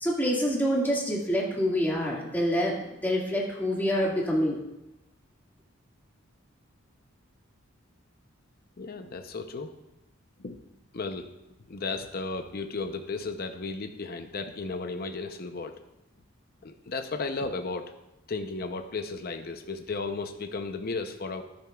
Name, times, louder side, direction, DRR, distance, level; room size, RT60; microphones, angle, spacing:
voice 1, 0.0-4.6, equal, 10° left, -4 dB, 1.9 m, -26 dB
voice 2, 8.8-9.7 10.4-10.6 10.9-11.3 11.7-15.8 16.6-17.9 18.3-21.4, left 3 dB, 45° left, 6 dB, 0.6 m, -34 dB
13.0 x 10.5 x 2.3 m, 0.93 s
head